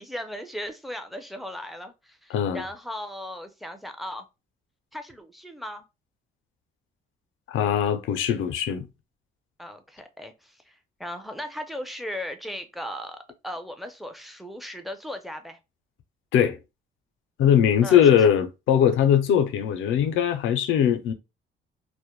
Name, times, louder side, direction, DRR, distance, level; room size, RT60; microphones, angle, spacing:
voice 1, 0.0-4.3 4.9-5.8 9.6-13.2 13.4-15.6 17.8-18.3, equal, ahead, 0.4 m, -37 dB
voice 2, 2.3-2.6 7.5-8.9 16.3-16.6 17.4-21.1, left 9 dB, 85° left, 0.5 m, -21 dB
2.1 x 2.1 x 2.9 m
cardioid pair, 90°, 20 cm